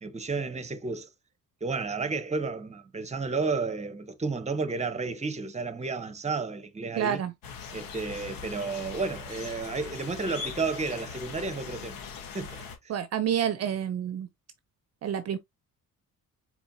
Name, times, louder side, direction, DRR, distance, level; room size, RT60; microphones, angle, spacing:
voice 1, 0.0-1.1 1.6-7.2 7.7-12.0 12.3-12.6, right 4 dB, 20° right, 0.9 m, -32 dB
voice 2, 7.0-7.3 12.9-14.3 15.0-15.4, right 9 dB, 50° right, 0.6 m, -28 dB
sound 1, 7.4-12.8, left 6 dB, 85° left, 1.3 m, -41 dB
4.3 x 4.3 x 2.6 m
cardioid pair, 105°, 34 cm